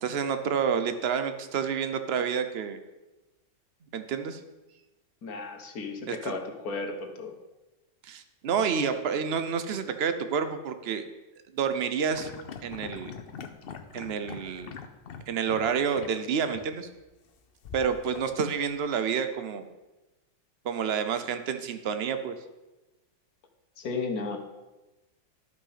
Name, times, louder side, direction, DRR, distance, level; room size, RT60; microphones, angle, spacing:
voice 1, 0.0-2.8 3.9-4.4 6.1-6.3 8.0-11.0 11.5-12.3 12.6-13.1 13.9-14.7 15.3-16.9 17.7-19.7 20.6-22.3, right 6 dB, 80° right, 9 dB, 0.5 m, -29 dB
voice 2, 5.2-7.4 23.8-24.4, left 4 dB, 55° left, 3 dB, 1.6 m, -34 dB
sound 1, 12.1-15.7 15.9-16.1 16.5-16.7 17.6-18.7, left 6 dB, 75° left, 0.5 m, -42 dB
12.0 x 5.7 x 5.7 m, 1.1 s
omnidirectional pair, 1.9 m